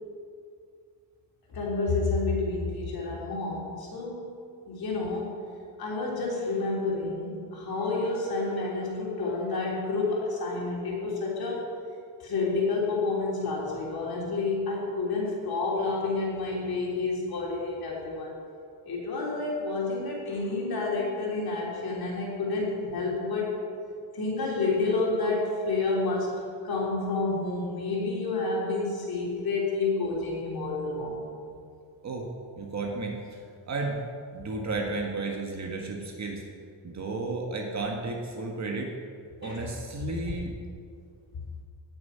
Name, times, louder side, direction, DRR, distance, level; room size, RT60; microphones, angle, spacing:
voice 1, 1.5-4.3 4.7-5.4 5.8-11.7 12.2-18.3 18.8-23.6 24.1-31.2 39.4-39.7 40.0-40.1, left 3 dB, 55° left, -3 dB, 3.4 m, -29 dB
voice 2, 32.6-33.2 33.7-34.0 34.3-36.4 36.8-38.9 39.4-40.5, right 3 dB, 40° right, 1 dB, 1.5 m, -33 dB
17.0 x 7.0 x 5.7 m, 2.3 s
cardioid pair, 150°, 44 cm